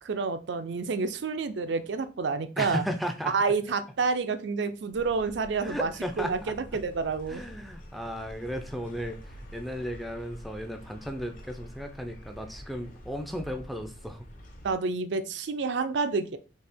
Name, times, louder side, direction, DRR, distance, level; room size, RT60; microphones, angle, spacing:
voice 1, 0.0-2.8 3.3-5.9 6.2-7.4 14.6-16.4, right 4 dB, 70° right, 10 dB, 0.4 m, -29 dB
voice 2, 2.6-3.3 5.6-6.5 7.3-14.3, equal, ahead, 5 dB, 0.4 m, -35 dB
sound 1, 4.9-14.7, equal, 45° left, 0.9 m, -47 dB
4.3 x 2.8 x 3.5 m, 0.33 s
head